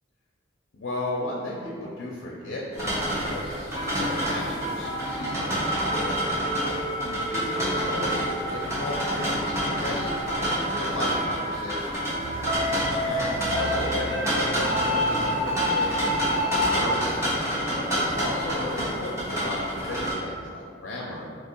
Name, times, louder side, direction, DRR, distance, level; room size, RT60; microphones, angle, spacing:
voice 1, 0.7-6.3 7.0-12.6 13.0-21.3, left 1 dB, 70° left, -3 dB, 0.5 m, -35 dB
sound 1, 2.7-20.1, equal, 15° right, 0.8 m, -28 dB
sound 2, 3.7-16.8, equal, 45° right, 1.3 m, -31 dB
sound 3, 12.2-16.3, right 3 dB, 80° right, 0.3 m, -39 dB
2.8 x 2.6 x 4.2 m, 2.3 s
head